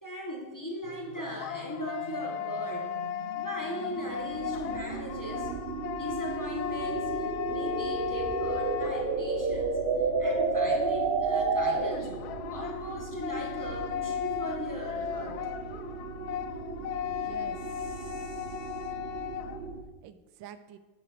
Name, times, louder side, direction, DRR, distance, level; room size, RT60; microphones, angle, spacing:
voice 1, 0.0-2.9 3.3-5.5 5.9-9.7 10.2-12.1 12.5-15.4, equal, 10° left, 0 dB, 1.2 m, -38 dB
sound 1, 0.9-9.6 11.9-19.7, left 10 dB, 70° left, 0.9 m, -36 dB
sound 2, 0.9-12.2, right 4 dB, 50° right, 0.7 m, -31 dB
sound 3, 4.1-19.8, right 5 dB, 65° right, 1.4 m, -41 dB
voice 2, 17.0-19.0 20.0-20.8, right 9 dB, 85° right, 12 dB, 1.4 m, -50 dB
10.0 x 8.8 x 4.7 m, 1.2 s
omnidirectional pair, 2.1 m